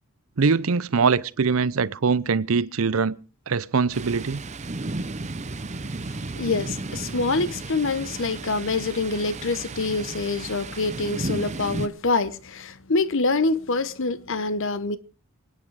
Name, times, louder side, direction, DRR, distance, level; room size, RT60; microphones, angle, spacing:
voice 1, 0.4-3.1 3.5-4.4, right 5 dB, 70° right, 0.6 m, -22 dB
Thunder, 3.9-11.9, right 2 dB, 35° right, 0.8 m, -33 dB
voice 2, 6.4-15.0, left 3 dB, 60° left, 1.0 m, -25 dB
25.5 x 9.6 x 4.8 m
head